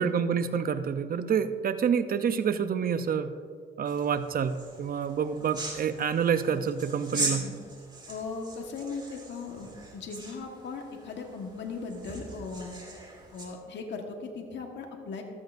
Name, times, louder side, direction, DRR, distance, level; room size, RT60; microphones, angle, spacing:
voice 1, 0.0-3.4 3.8-7.5, right 7 dB, 45° right, 11 dB, 0.7 m, -28 dB
sound 1, 3.9-13.5, right 2 dB, 20° right, 2.6 m, -40 dB
voice 2, 7.1-7.5 8.1-12.8 13.3-15.2, left 4 dB, 65° left, 2 dB, 1.5 m, -38 dB
14.5 x 13.5 x 2.6 m, 2.1 s
cardioid pair, 90°, 20 cm